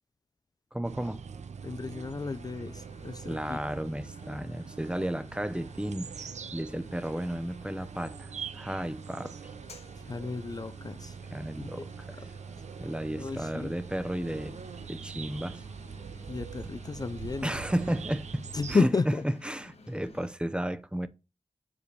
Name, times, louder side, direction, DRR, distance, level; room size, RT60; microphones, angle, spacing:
voice 1, 0.7-1.2 3.3-9.3 11.3-11.9 12.8-14.6 14.9-15.6 17.4-18.4 18.8-18.9 19.5-21.1, right 1 dB, 10° right, 0.6 m, -33 dB
sound 1, 0.8-18.8, right 6 dB, 80° right, 0.5 m, -43 dB
voice 2, 1.6-3.6 9.9-11.2 11.6-11.9 12.1-12.3 13.2-13.7 16.3-17.5 18.5-19.3, left 4 dB, 35° left, 0.4 m, -32 dB
sound 2, 2.1-20.3, left 3 dB, 65° left, 1.3 m, -55 dB
6.7 x 5.0 x 3.2 m
cardioid pair, 55°, 12 cm